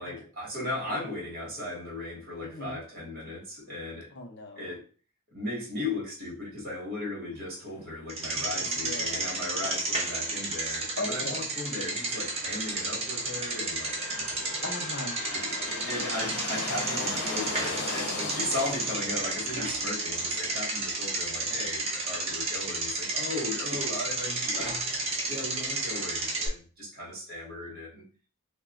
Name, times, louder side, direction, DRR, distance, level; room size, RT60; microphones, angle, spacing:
voice 1, 0.0-4.1 4.6-4.8 5.3-13.9 15.3-24.8 25.3-28.0, left 2 dB, 45° right, -4 dB, 1.7 m, -36 dB
voice 2, 2.4-2.8 4.1-4.8 8.3-9.3 11.0-11.4 14.6-15.2, left 2 dB, 50° left, 2 dB, 0.6 m, -39 dB
Bicycle, 8.1-26.5, right 2 dB, 30° right, 0.7 m, -32 dB
sound 1, 8.9-26.5, left 2 dB, 85° left, 0.9 m, -40 dB
2.9 x 2.2 x 3.6 m, 0.38 s
head